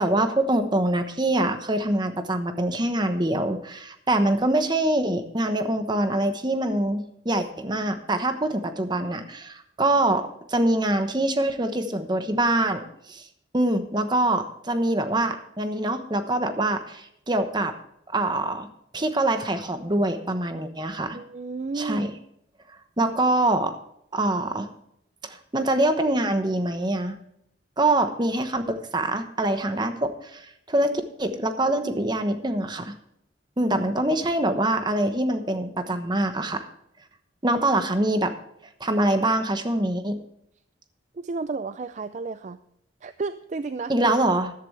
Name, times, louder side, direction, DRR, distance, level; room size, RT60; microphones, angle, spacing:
voice 1, 0.0-13.3 13.5-17.7 18.1-18.7 18.9-21.2 21.7-22.1 22.7-23.8 24.1-24.7 25.2-27.2 27.8-32.9 33.6-36.7 37.4-38.3 38.8-40.2 43.9-44.5, right 1 dB, 25° right, 8 dB, 1.1 m, -24 dB
voice 2, 21.1-22.1 41.1-42.6 43.0-43.9, right 4 dB, 40° right, 12 dB, 0.4 m, -32 dB
13.5 x 11.5 x 3.3 m, 0.74 s
head